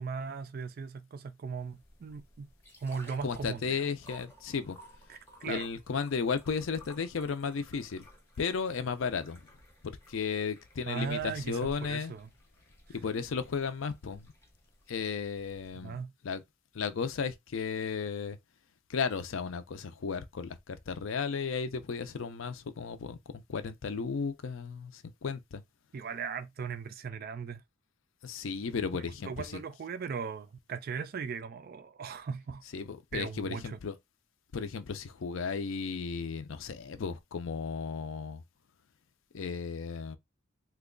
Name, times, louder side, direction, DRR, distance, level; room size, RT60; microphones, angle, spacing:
voice 1, 0.0-2.5 2.8-3.9 5.1-5.7 10.9-12.3 15.7-16.1 25.9-27.6 29.3-32.6 33.1-33.8, right 6 dB, 45° right, 0.3 m, -38 dB
sound 1, 1.6-15.8, equal, 10° left, 0.7 m, -57 dB
voice 2, 3.2-4.8 5.4-8.1 8.4-9.4 9.8-12.1 12.9-14.3 14.9-16.0 16.2-16.4 16.7-18.4 18.9-25.6 28.2-29.6 32.7-33.9 34.5-38.4 39.3-40.2, left 5 dB, 65° left, 0.5 m, -34 dB
3.0 x 2.2 x 3.7 m
head